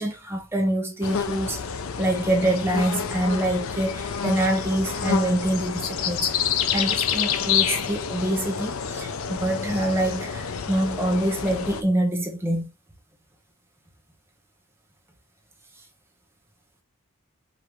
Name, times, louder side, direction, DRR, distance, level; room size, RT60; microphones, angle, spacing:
voice 1, 0.0-12.7, right 1 dB, 10° right, 0.8 m, -25 dB
sound 1, 1.0-11.8, left 7 dB, 80° left, 0.5 m, -28 dB
5.2 x 2.7 x 3.0 m
head